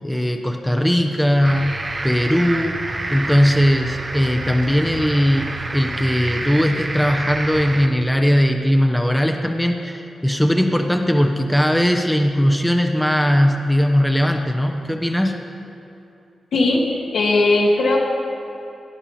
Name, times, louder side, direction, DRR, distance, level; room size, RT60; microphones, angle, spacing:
voice 1, 0.0-2.8 3.1-15.4, equal, 5° left, 4 dB, 0.9 m, -19 dB
sound 1, 1.4-7.9, right 2 dB, 35° right, 1.0 m, -28 dB
voice 2, 16.5-16.8 17.1-18.0, left 2 dB, 80° left, -2 dB, 2.1 m, -17 dB
17.5 x 10.5 x 4.3 m, 2.7 s
cardioid pair, 70°, 0 cm